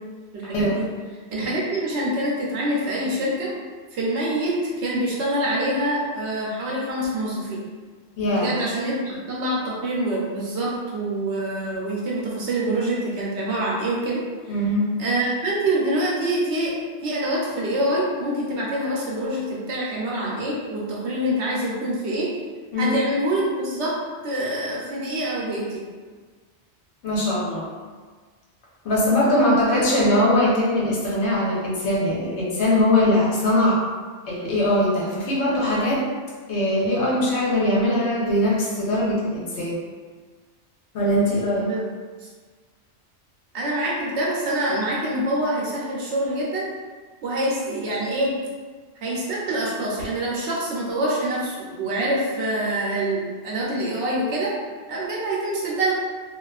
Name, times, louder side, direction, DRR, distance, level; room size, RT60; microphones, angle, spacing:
voice 1, 0.3-0.9 1.3-3.5 3.9-7.6 8.3-14.2 15.0-16.7 17.0-22.3 22.8-23.9 24.2-25.8 29.2-29.8 41.6-41.8 42.2-42.3 43.5-46.7 47.2-48.4 49.0-54.5 54.9-55.9, right 1 dB, 75° right, -5 dB, 0.9 m, -25 dB
voice 2, 8.2-8.5 14.5-14.9 22.7-23.0 27.0-27.7 28.8-33.8 34.3-36.1 36.5-39.8 40.9-41.7, left 1 dB, 75° left, -5 dB, 1.0 m, -21 dB
2.4 x 2.4 x 2.3 m, 1.5 s
omnidirectional pair, 1.2 m